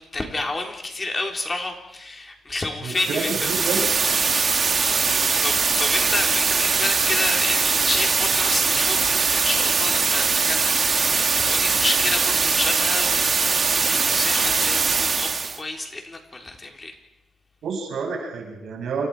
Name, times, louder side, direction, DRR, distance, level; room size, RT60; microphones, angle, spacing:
voice 1, 0.0-3.3 5.1-16.9, left 2 dB, 25° left, 2 dB, 4.1 m, -30 dB
voice 2, 2.8-3.8 17.6-19.1, right 5 dB, 70° right, 0 dB, 7.9 m, -29 dB
sound 1, 2.9-15.6, right 5 dB, 35° right, 1.6 m, -21 dB
29.0 x 27.5 x 5.1 m, 0.89 s
cardioid pair, 125°, 0 cm